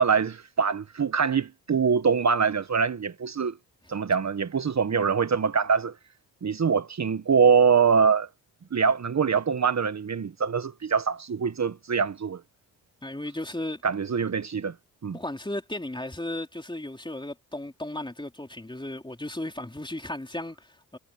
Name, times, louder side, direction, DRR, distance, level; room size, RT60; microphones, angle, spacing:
voice 1, 0.0-3.5 3.9-5.9 6.4-8.3 8.7-12.4 13.8-14.7 15.0-15.2, right 6 dB, 45° right, 1.4 m, -24 dB
voice 2, 13.0-13.8 15.1-21.0, left 1 dB, 10° left, 3.6 m, -35 dB
supercardioid pair, 50°, 39 cm